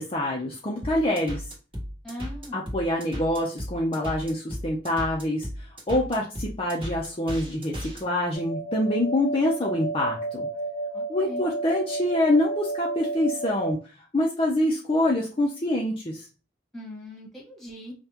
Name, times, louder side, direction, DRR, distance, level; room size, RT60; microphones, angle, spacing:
voice 1, 0.0-1.4 2.5-10.5 11.1-13.8 14.1-16.3, left 1 dB, 30° left, -2 dB, 0.6 m, -26 dB
sound 1, 0.8-8.0, equal, 30° right, 1.7 m, -35 dB
voice 2, 2.0-2.6 10.9-11.5 16.7-17.9, left 1 dB, ahead, -3 dB, 1.6 m, -40 dB
sound 2, 8.3-13.7, right 2 dB, 55° right, 2.0 m, -32 dB
5.5 x 2.3 x 2.9 m, 0.34 s
head